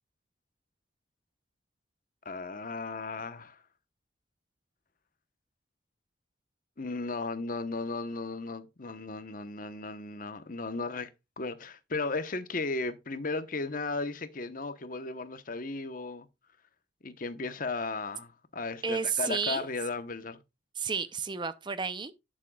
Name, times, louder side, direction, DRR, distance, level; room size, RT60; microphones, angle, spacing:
voice 1, 2.2-3.6 6.8-11.1 11.4-16.3 17.0-20.4, left 3 dB, 45° left, 1.0 m, -35 dB
voice 2, 18.8-19.6 20.8-22.1, right 5 dB, 25° right, 0.5 m, -31 dB
11.0 x 7.5 x 2.3 m
head